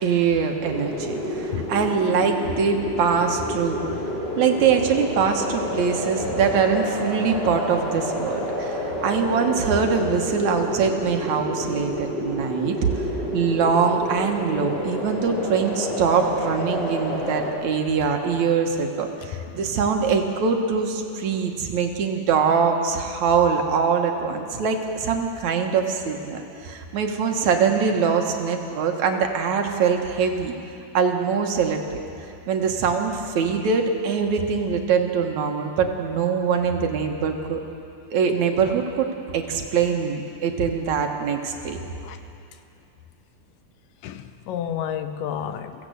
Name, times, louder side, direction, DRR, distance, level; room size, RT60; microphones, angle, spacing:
voice 1, 0.0-4.0 4.4-12.9 13.3-30.5 30.9-32.0 32.5-37.6 38.1-39.1 39.3-41.8, right 6 dB, 60° right, 3 dB, 2.6 m, -23 dB
sound 1, 0.6-17.5, left 1 dB, 15° left, 4.0 m, -29 dB
voice 2, 44.0-45.9, left 9 dB, 80° left, 9 dB, 2.5 m, -30 dB
22.5 x 16.5 x 8.1 m, 2.7 s
omnidirectional pair, 4.0 m